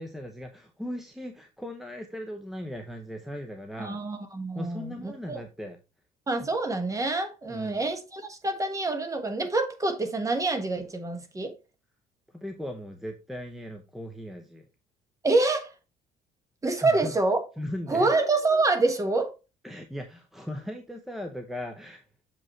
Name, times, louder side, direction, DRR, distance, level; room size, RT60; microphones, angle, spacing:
voice 1, 0.0-4.0 4.5-5.8 7.5-7.8 12.3-14.7 16.8-17.1 17.6-18.1 19.6-22.3, equal, ahead, 0.8 m, -38 dB
voice 2, 3.8-5.4 6.3-11.5 15.2-15.7 16.6-17.4 17.9-19.3, right 3 dB, 20° right, 1.4 m, -26 dB
7.2 x 5.3 x 3.2 m
cardioid pair, 110°, 17 cm